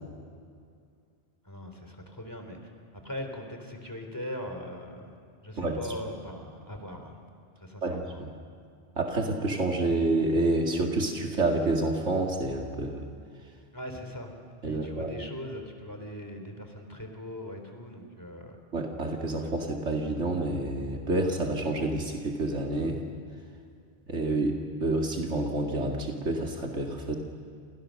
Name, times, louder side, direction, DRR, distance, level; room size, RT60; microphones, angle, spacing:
voice 1, 1.4-5.1 5.4-7.2 7.6-8.2 13.7-14.3 14.6-18.6, left 1 dB, 15° left, 4 dB, 3.6 m, -40 dB
voice 2, 7.8-8.3 9.0-13.0 14.6-15.1 18.7-23.0 24.1-27.2, right 2 dB, 85° right, 1 dB, 2.5 m, -28 dB
29.5 x 27.5 x 6.5 m, 2.3 s
omnidirectional pair, 1.2 m